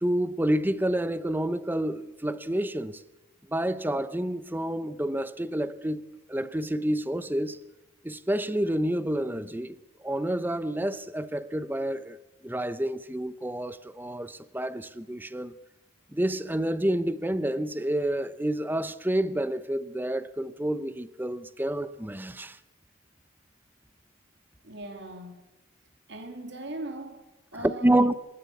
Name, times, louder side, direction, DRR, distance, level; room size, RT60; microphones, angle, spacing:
voice 1, 0.0-3.0 3.5-7.6 8.0-12.2 12.4-15.5 16.1-22.6 27.6-28.1, right 1 dB, 10° right, 0.7 m, -29 dB
voice 2, 24.6-25.5 26.1-27.2 27.5-28.1, right 2 dB, 60° right, 2.8 m, -39 dB
26.0 x 12.5 x 8.4 m
head